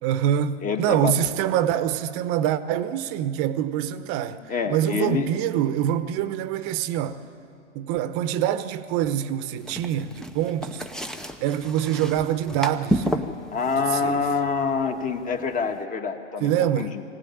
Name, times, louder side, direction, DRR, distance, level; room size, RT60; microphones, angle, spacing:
voice 1, 0.0-7.2 7.7-10.9 11.4-13.3 13.9-14.2 16.4-16.9, right 10 dB, 40° right, 1.1 m, -25 dB
voice 2, 0.6-1.1 4.5-5.3 13.5-17.0, left 5 dB, 20° left, 1.6 m, -26 dB
sound 1, 9.6-15.8, equal, ahead, 0.8 m, -32 dB
21.5 x 17.5 x 9.2 m
hypercardioid pair, 120°, 37 cm